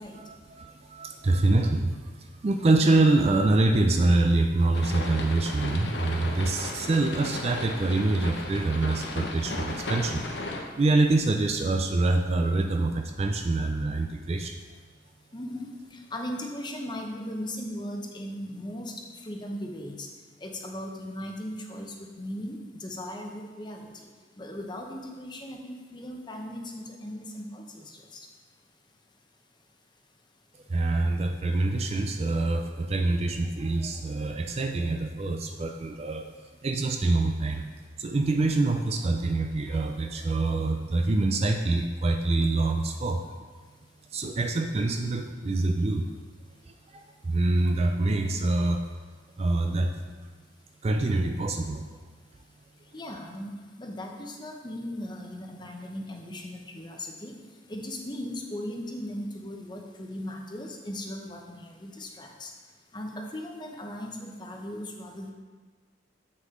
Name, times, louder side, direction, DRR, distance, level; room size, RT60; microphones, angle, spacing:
voice 1, 0.2-10.2 10.8-14.6 30.7-36.3 36.6-37.7 38.0-43.3 44.1-46.1 46.7-48.8 49.4-50.0 50.8-51.8, right 2 dB, 35° right, 5 dB, 0.4 m, -25 dB
sound 1, 4.7-10.6, left 2 dB, 65° left, 0.9 m, -35 dB
voice 2, 15.3-18.9 19.2-20.1 20.4-23.9 24.4-28.3 52.9-53.5 53.8-57.3 57.7-62.5 62.9-65.3, left 1 dB, 25° left, 2 dB, 0.8 m, -38 dB
7.4 x 6.4 x 3.7 m, 1.4 s
head